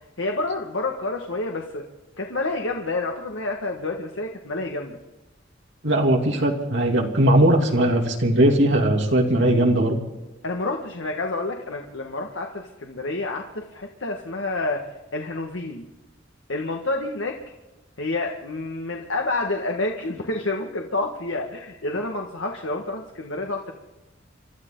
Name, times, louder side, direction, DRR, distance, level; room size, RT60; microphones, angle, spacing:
voice 1, 0.2-1.8 2.2-5.0 10.4-14.9 15.1-15.9 16.5-17.4 18.0-23.7, left 2 dB, 80° left, 1 dB, 1.7 m, -28 dB
voice 2, 5.8-10.0, right 1 dB, 65° right, 1 dB, 2.9 m, -19 dB
28.0 x 13.0 x 3.9 m, 1.1 s
head